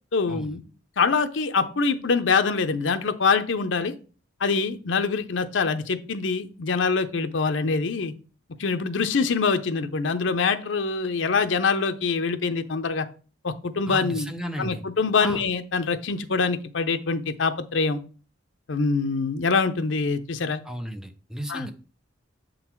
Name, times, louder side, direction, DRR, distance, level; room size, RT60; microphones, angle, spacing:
voice 1, 0.1-0.6 1.0-3.9 4.4-8.1 8.6-13.1 13.4-14.3 14.6-18.0 18.7-20.6 21.5-21.7, left 4 dB, 75° left, 10 dB, 0.6 m, -24 dB
voice 2, 13.9-14.8 15.2-15.4 20.6-21.7, equal, 5° right, 6 dB, 0.6 m, -34 dB
7.1 x 3.9 x 4.5 m, 0.38 s
head